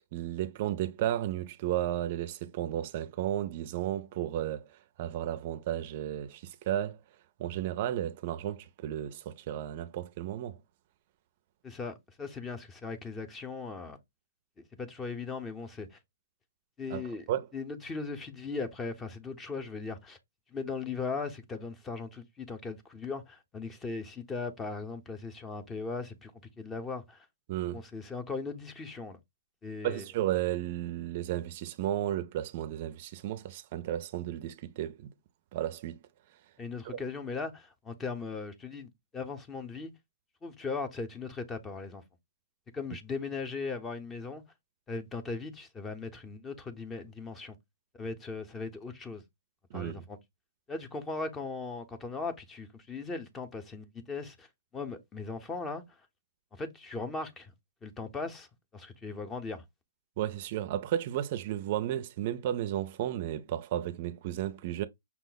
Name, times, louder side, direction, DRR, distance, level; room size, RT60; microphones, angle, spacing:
voice 1, 0.1-7.0 7.4-10.6 16.9-17.5 27.5-27.8 29.8-35.1 35.5-36.0 36.8-37.0 49.7-50.0 60.2-64.9, right 12 dB, 45° right, 0.5 m, -33 dB
voice 2, 11.6-14.0 14.8-16.0 16.8-17.2 17.5-20.2 20.5-26.3 26.6-27.3 27.7-29.2 29.6-30.0 36.6-39.9 40.4-42.0 42.7-44.4 44.9-47.6 47.9-49.2 49.7-50.2 50.7-54.5 54.7-55.8 56.6-57.5 57.8-58.5 58.7-59.6, left 4 dB, 15° left, 0.7 m, -38 dB
5.8 x 2.0 x 3.9 m
hypercardioid pair, 140°, 0 cm